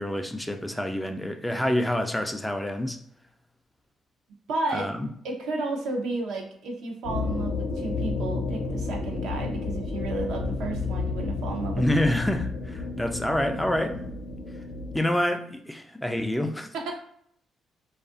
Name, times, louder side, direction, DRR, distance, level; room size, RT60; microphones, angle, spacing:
voice 1, 0.0-3.0 4.7-5.1 11.8-14.1 14.9-16.7, left 1 dB, 5° left, 5 dB, 0.3 m, -27 dB
voice 2, 4.5-4.9 5.2-11.9 16.7-17.0, right 2 dB, 85° right, 2 dB, 0.6 m, -32 dB
sound 1, 7.0-15.0, left 4 dB, 85° left, 0.5 m, -31 dB
2.6 x 2.4 x 2.4 m, 0.67 s
cardioid pair, 90°, 0 cm